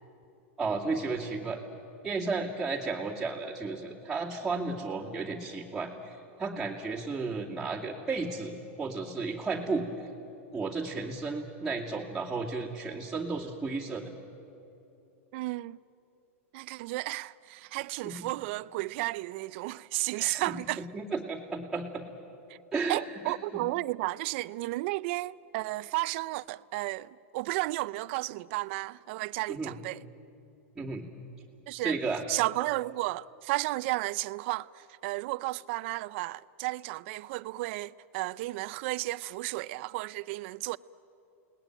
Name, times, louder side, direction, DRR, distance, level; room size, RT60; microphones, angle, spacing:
voice 1, 0.6-1.6 2.0-9.9 10.5-14.1 18.0-18.3 20.2-22.1 22.7-23.0 23.3-23.6 29.5-29.7 30.8-31.0 31.8-32.2, right 4 dB, 5° right, 2.5 m, -33 dB
voice 2, 15.3-15.8 16.5-20.9 22.5-22.6 22.9-30.0 31.7-32.0 32.3-40.8, right 20 dB, 55° right, 0.6 m, -33 dB
29.5 x 19.5 x 9.0 m
hypercardioid pair, 130°, 7 cm